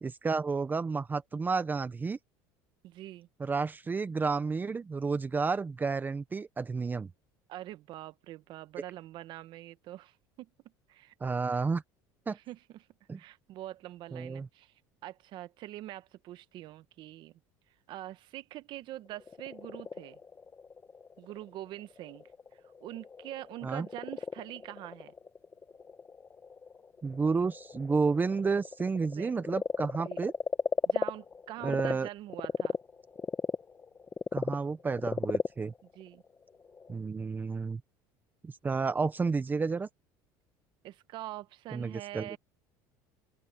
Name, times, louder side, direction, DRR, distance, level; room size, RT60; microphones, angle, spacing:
voice 1, 0.0-2.2 3.4-7.1 11.2-11.8 12.3-12.4 13.1-13.2 14.1-14.5 23.6-23.9 27.0-30.3 31.6-32.1 34.3-35.7 36.9-37.8 38.4-39.9 41.7-42.4, right 4 dB, 20° right, 1.0 m, -31 dB
voice 2, 2.8-3.3 7.5-10.5 10.9-11.1 11.5-11.7 12.3-12.9 13.2-14.7 15.0-17.3 17.9-20.2 21.2-22.3 22.6-25.1 29.1-29.4 30.0-30.2 30.9-32.7 35.9-36.2 40.8-42.4, right 15 dB, 60° right, 1.2 m, -44 dB
Frog, 19.1-31.9 32.3-36.9, left 5 dB, 25° left, 1.4 m, -36 dB
open air
supercardioid pair, 110°, 9 cm